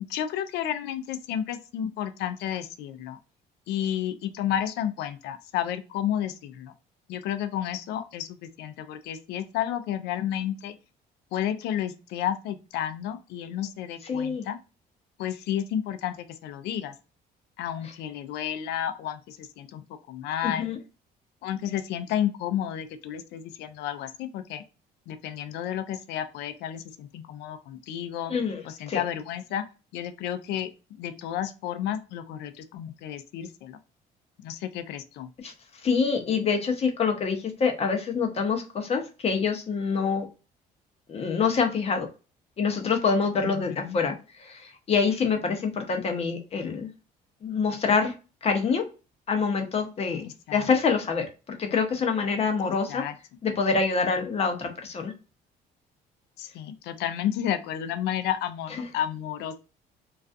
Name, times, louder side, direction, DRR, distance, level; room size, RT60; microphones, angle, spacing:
voice 1, 0.1-3.2 3.7-6.7 7.1-10.8 11.3-14.6 15.2-16.9 17.6-20.7 21.4-24.6 25.1-28.3 28.6-29.6 29.9-30.7 31.0-33.8 34.4-35.3 43.4-44.0 50.5-50.7 52.6-53.2 56.4-59.6, left 10 dB, 80° left, 9 dB, 0.4 m, -31 dB
voice 2, 14.0-14.4 20.4-20.8 28.3-28.6 28.9-29.0 35.4-35.5 35.8-40.3 41.1-42.1 42.6-44.1 44.4-46.9 47.4-48.1 48.4-48.8 49.3-51.3 51.6-53.0 53.4-55.1 58.8-58.9, left 5 dB, 35° left, 4 dB, 0.6 m, -26 dB
2.4 x 2.3 x 2.5 m, 0.31 s
cardioid pair, 110°, 17 cm